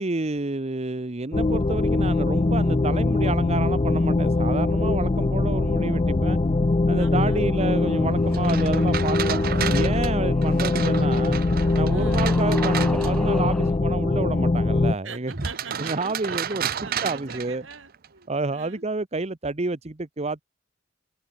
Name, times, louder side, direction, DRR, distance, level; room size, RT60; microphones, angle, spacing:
voice 1, 0.0-6.4 6.9-9.4 9.7-11.4 11.7-15.3 15.8-16.6 17.0-17.6 18.3-20.4, right 3 dB, 35° right, 1.0 m, -29 dB
sound 1, 1.3-14.9, left 2 dB, 30° left, 0.5 m, -22 dB
voice 2, 7.0-7.5 11.9-12.3 15.0-18.9, right 5 dB, 75° right, 6.4 m, -43 dB
sound 2, 7.1-13.8, equal, ahead, 1.7 m, -42 dB
sound 3, 8.3-13.4 15.3-18.1, right 8 dB, 50° right, 0.6 m, -32 dB
head